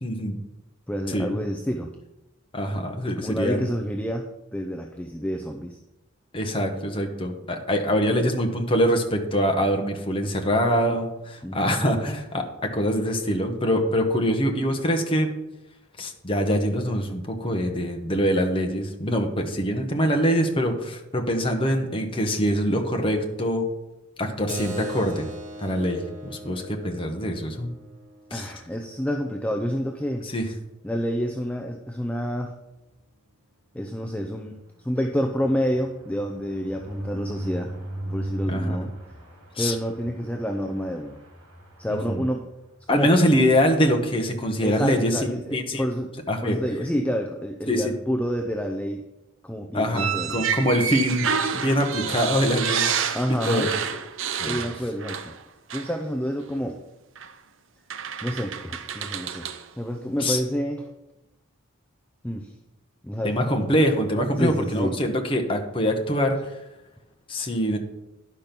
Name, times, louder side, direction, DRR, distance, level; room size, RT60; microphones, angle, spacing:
voice 1, 0.0-0.4 1.1-1.3 2.5-3.6 6.3-15.3 16.0-23.7 24.2-25.3 25.6-27.7 28.3-28.5 30.3-30.5 38.5-38.8 39.6-39.7 41.9-42.2 42.9-45.8 46.3-46.6 47.7-47.9 49.7-51.3 51.5-53.2 53.4-53.7 54.4-54.6 60.2-60.4 63.2-66.5 67.3-67.8, equal, 25° left, 3 dB, 1.0 m, -24 dB
voice 2, 0.9-1.9 3.2-5.8 11.4-11.8 28.3-30.3 30.8-32.5 33.7-37.7 38.1-38.9 39.6-41.2 41.8-42.4 42.9-43.1 44.6-46.1 46.4-49.0 49.4-50.4 53.1-53.7 54.5-55.3 55.7-56.8 58.2-60.8 62.2-62.5 63.0-63.6 64.4-65.0, equal, 5° left, 3 dB, 0.5 m, -28 dB
Keyboard (musical), 24.5-29.6, right 1 dB, 35° right, 1.0 m, -39 dB
sound 1, 34.4-42.9 43.3-43.5 43.7-43.8 44.1-44.4, right 1 dB, 80° right, 2.7 m, -37 dB
sound 2, 49.9-55.4 55.7-55.9 57.2-57.3 57.9-59.6, right 7 dB, 65° right, 0.6 m, -28 dB
10.5 x 5.2 x 5.9 m, 0.98 s
head